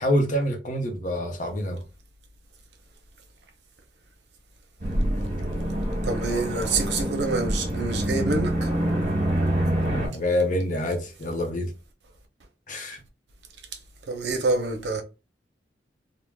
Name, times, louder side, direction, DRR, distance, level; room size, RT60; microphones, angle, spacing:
voice 1, 0.0-1.8 9.8-11.7 12.7-13.0, left 1 dB, 45° left, 0.6 m, -26 dB
sound 1, 4.8-10.1, right 1 dB, 45° right, 1.1 m, -26 dB
voice 2, 6.0-8.7 14.1-15.0, right 3 dB, 70° right, 0.6 m, -27 dB
3.2 x 2.1 x 2.2 m
head